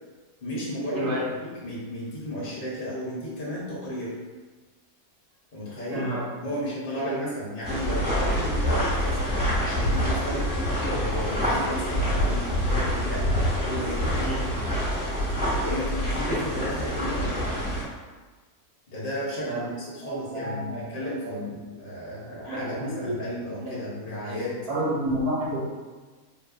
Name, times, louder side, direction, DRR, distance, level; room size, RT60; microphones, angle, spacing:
voice 1, 0.4-1.1 1.6-4.2 5.5-6.1 6.4-13.3 13.6-14.7 15.6-17.7 18.9-24.6, equal, 45° left, -7 dB, 0.8 m, -34 dB
voice 2, 5.9-6.5 6.9-7.2 14.2-14.4 19.4-19.7 20.0-21.0 21.3-21.4 22.5-23.1 23.5-23.8 24.2-24.4 24.7-25.6, right 1 dB, 90° right, -7 dB, 1.6 m, -30 dB
sound 1, 7.6-17.8, equal, 5° right, 1.2 m, -26 dB
3.8 x 2.6 x 2.4 m, 1.3 s
omnidirectional pair, 1.6 m